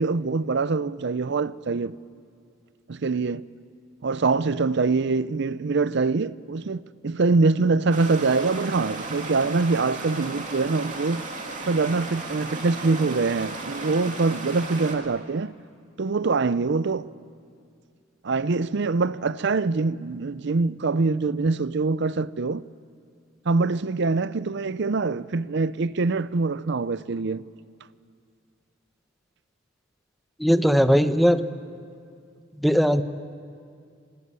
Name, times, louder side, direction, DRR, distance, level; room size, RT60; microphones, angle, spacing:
voice 1, 0.0-2.0 2.9-3.5 4.0-11.2 11.6-15.5 16.0-17.1 18.2-22.7 23.4-27.5, right 3 dB, 60° right, 0.6 m, -24 dB
Stream, 7.9-15.0, right 2 dB, 40° right, 2.9 m, -35 dB
voice 2, 30.4-31.5 32.6-33.0, equal, ahead, 0.8 m, -19 dB
25.5 x 18.0 x 9.6 m
head